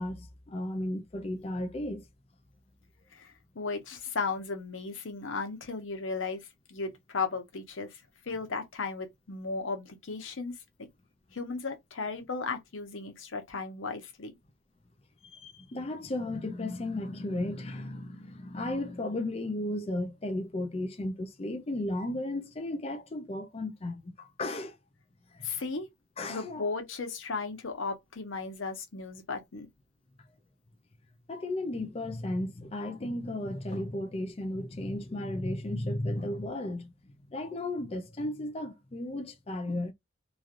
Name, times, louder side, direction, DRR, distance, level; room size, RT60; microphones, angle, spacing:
voice 1, 0.0-2.0 15.2-24.8 25.3-25.5 26.2-26.7 31.3-36.9 37.3-39.9, left 1 dB, 30° left, 0.4 m, -34 dB
voice 2, 3.1-10.5 11.3-14.3 25.4-25.9 26.3-29.7, left 4 dB, 85° left, 0.9 m, -35 dB
3.1 x 2.4 x 2.5 m
head